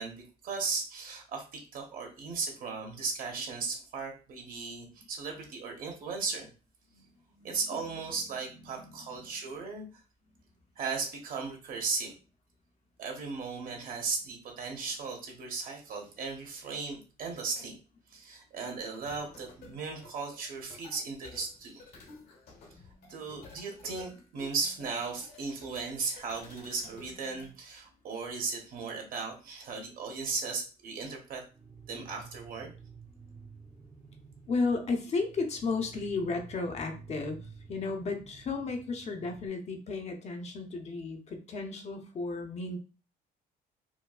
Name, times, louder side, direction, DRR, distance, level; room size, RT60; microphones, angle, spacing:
voice 1, 0.0-6.5 7.4-9.9 10.8-12.2 13.0-17.8 18.1-21.8 23.1-31.4 31.9-32.7, right 4 dB, 55° right, 2 dB, 1.1 m, -36 dB
voice 2, 6.9-9.4 34.5-42.8, left 3 dB, 40° left, 4 dB, 0.7 m, -34 dB
sound 1, 18.9-27.5, left 3 dB, 65° left, 1.1 m, -53 dB
sound 2, 31.5-39.5, right 5 dB, 20° right, 0.8 m, -51 dB
4.5 x 2.2 x 2.3 m, 0.34 s
cardioid pair, 110°, 17 cm